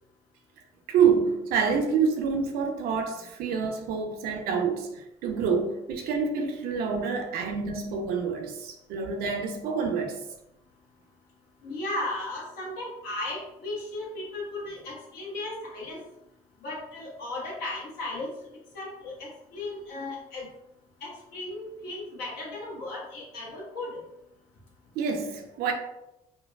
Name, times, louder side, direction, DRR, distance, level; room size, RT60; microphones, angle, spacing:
voice 1, 0.9-10.2 25.0-25.7, right 6 dB, 60° right, 0.6 m, -27 dB
voice 2, 11.6-16.0 16.6-18.3 18.7-20.5 21.0-24.0, left 2 dB, 65° left, 1.2 m, -36 dB
4.5 x 2.2 x 2.2 m
figure-of-eight pair, 50°, 18 cm